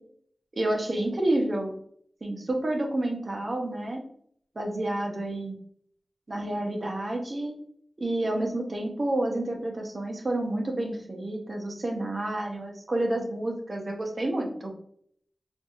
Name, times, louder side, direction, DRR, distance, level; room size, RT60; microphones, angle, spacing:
voice 1, 0.5-1.7 2.2-4.0 4.6-5.5 6.3-7.5 8.0-14.7, right 1 dB, 45° right, 1 dB, 0.8 m, -29 dB
4.5 x 2.6 x 2.5 m, 0.63 s
wide cardioid pair, 90°, 0 cm